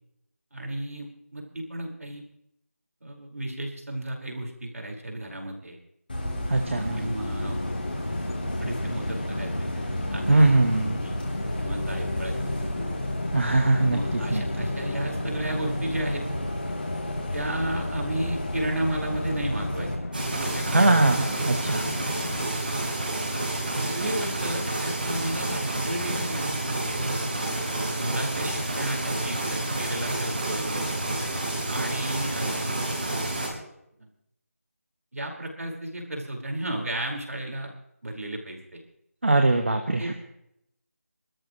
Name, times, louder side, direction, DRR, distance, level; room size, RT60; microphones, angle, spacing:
voice 1, 0.5-2.2 3.0-5.8 7.0-7.8 8.3-10.5 10.9-11.2 11.6-13.0 13.8-16.2 17.3-19.9 20.2-21.0 23.7-27.3 28.0-30.8 31.7-32.8 34.0-34.1 35.1-37.7 38.0-38.8 40.0-40.1, right 1 dB, 65° right, 0 dB, 4.9 m, -33 dB
Bus, 6.1-20.0, left 1 dB, 35° left, 3.2 m, -32 dB
voice 2, 6.5-7.1 10.3-11.0 13.3-14.4 20.7-21.8 39.2-40.1, right 2 dB, 50° right, 5 dB, 1.3 m, -21 dB
sound 1, 7.4-22.4, left 2 dB, 55° left, 1.7 m, -36 dB
sound 2, 20.1-33.5, right 2 dB, 35° right, 4.8 m, -29 dB
25.0 x 13.0 x 3.1 m, 0.78 s
figure-of-eight pair, 180°, 8 cm